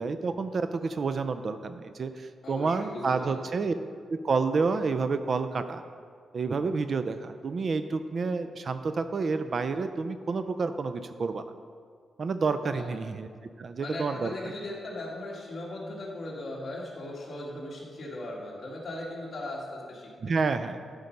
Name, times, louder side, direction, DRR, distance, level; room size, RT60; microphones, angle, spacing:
voice 1, 0.0-3.7 4.1-5.8 6.3-11.4 12.2-13.3 13.6-14.5 20.2-20.8, right 4 dB, 40° right, 10 dB, 0.3 m, -29 dB
voice 2, 2.4-3.4 12.6-12.8 13.8-20.1 20.4-20.5, left 1 dB, 40° left, -4 dB, 2.0 m, -38 dB
12.5 x 5.1 x 5.3 m, 2.1 s
wide cardioid pair, 165°, 0 cm